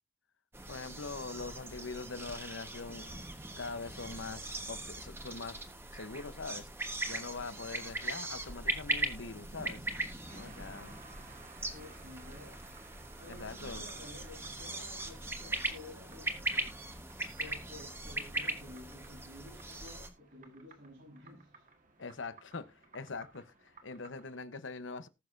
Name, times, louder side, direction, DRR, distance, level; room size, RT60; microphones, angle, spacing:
sound 1, 0.5-20.1, right 2 dB, 10° right, 1.2 m, -40 dB
voice 1, 0.7-3.2 3.6-5.7 5.9-6.7 7.0-9.9 10.3-11.0 13.3-13.8 22.0-25.1, left 4 dB, 75° left, 0.9 m, -43 dB
sound 2, 10.3-24.4, right 4 dB, 40° right, 1.8 m, -58 dB
voice 2, 11.7-12.6 13.2-16.7 17.4-21.6, left 1 dB, 85° right, 8.0 m, -52 dB
19.5 x 6.5 x 2.6 m
head